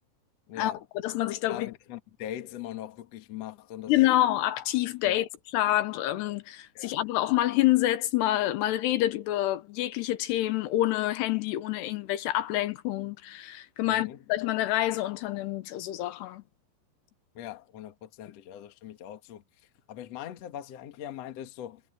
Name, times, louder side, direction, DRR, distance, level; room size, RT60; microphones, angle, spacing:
voice 1, 0.5-0.9 1.5-4.2 5.0-5.3 6.7-7.0 13.8-14.2 17.3-21.8, left 11 dB, 55° left, 1.9 m, -41 dB
voice 2, 1.0-1.7 3.9-5.3 5.5-16.4, left 15 dB, 80° left, 3.0 m, -27 dB
omnidirectional pair, 5.0 m